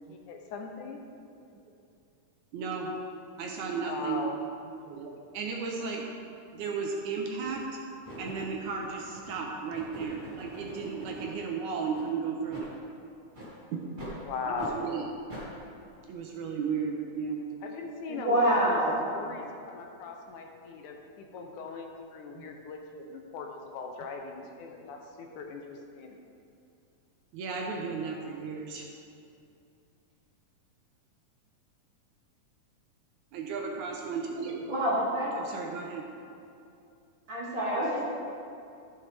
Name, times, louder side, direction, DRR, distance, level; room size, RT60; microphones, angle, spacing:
voice 1, 0.1-1.0 3.8-4.4 14.2-14.9 17.6-18.6 19.1-26.2, left 4 dB, 75° left, 2 dB, 2.2 m, -39 dB
voice 2, 2.5-2.9 3.4-4.2 4.8-6.0 6.5-7.6 8.2-12.7 13.7-13.9 14.5-15.1 16.1-17.4 19.3-19.4 21.3-21.5 22.4-22.5 25.3-25.4 27.3-28.9 33.3-34.7 35.4-36.1, right 5 dB, 75° right, 0 dB, 2.1 m, -34 dB
sound 1, 6.6-6.7 7.4-7.7 8.0-11.4 11.9-12.1 12.5-12.7 13.3-13.5 14.0-14.2 14.6-14.7 15.3-15.5, equal, 15° right, 2.4 m, -45 dB
voice 3, 18.1-19.0 34.7-35.3 37.3-38.0, right 1 dB, 40° right, -8 dB, 3.1 m, -26 dB
14.0 x 7.4 x 3.5 m, 2.6 s
omnidirectional pair, 3.7 m